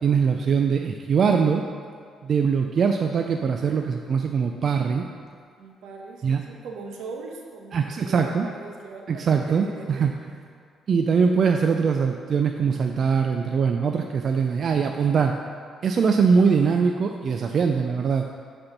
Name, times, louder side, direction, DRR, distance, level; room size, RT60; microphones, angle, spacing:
voice 1, 0.0-1.6 2.2-5.1 6.2-6.4 7.7-8.5 9.1-10.1 10.9-15.3 15.8-18.2, right 6 dB, 55° right, 4 dB, 0.4 m, -22 dB
voice 2, 5.6-10.1 14.3-15.3 16.0-16.4, right 4 dB, 85° right, 1 dB, 1.0 m, -41 dB
7.7 x 4.3 x 5.9 m, 2.1 s
cardioid pair, 90°, 0 cm